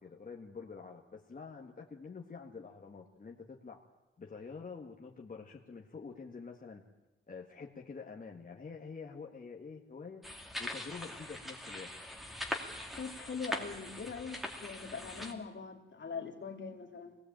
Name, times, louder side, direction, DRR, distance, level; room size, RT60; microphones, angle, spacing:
voice 1, 0.0-3.8 4.2-6.8 7.3-10.2 10.6-11.9, left 5 dB, 40° left, 0 dB, 1.9 m, -47 dB
sound 1, 10.2-15.3, left 1 dB, ahead, 2.5 m, -42 dB
voice 2, 13.0-17.2, left 5 dB, 60° left, 4 dB, 2.6 m, -42 dB
24.0 x 18.5 x 8.9 m, 1.0 s
wide cardioid pair, 135°, 21 cm